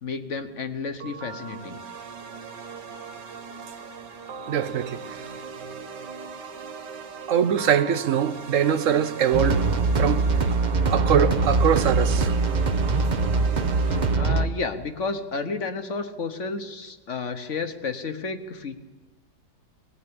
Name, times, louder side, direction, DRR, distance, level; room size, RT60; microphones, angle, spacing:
voice 1, 0.0-1.8 13.8-18.8, left 4 dB, 50° left, 1.4 m, -32 dB
sound 1, 1.0-14.2, right 5 dB, 85° right, 1.9 m, -39 dB
voice 2, 4.5-5.2 7.3-9.6 9.9-10.2 10.9-12.3, right 8 dB, 55° right, 1.1 m, -23 dB
sound 2, 9.3-14.5, right 3 dB, 35° right, 0.8 m, -22 dB
21.0 x 15.5 x 8.8 m
omnidirectional pair, 1.8 m